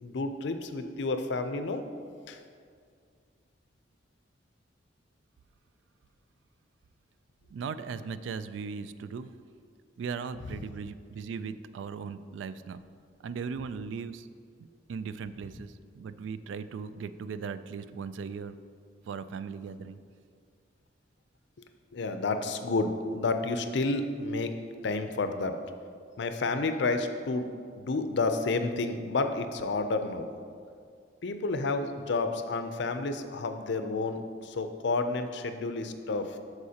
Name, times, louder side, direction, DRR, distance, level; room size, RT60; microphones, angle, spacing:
voice 1, 0.0-1.8 2.3-2.4 21.9-24.5 24.8-25.6 26.2-30.3 31.2-36.4, left 3 dB, 65° left, 8 dB, 0.5 m, -30 dB
voice 2, 7.5-9.3 10.0-12.8 13.2-14.3 14.6-18.5 19.1-20.0, right 5 dB, 75° right, 13 dB, 0.3 m, -38 dB
12.5 x 4.7 x 2.8 m, 2.2 s
head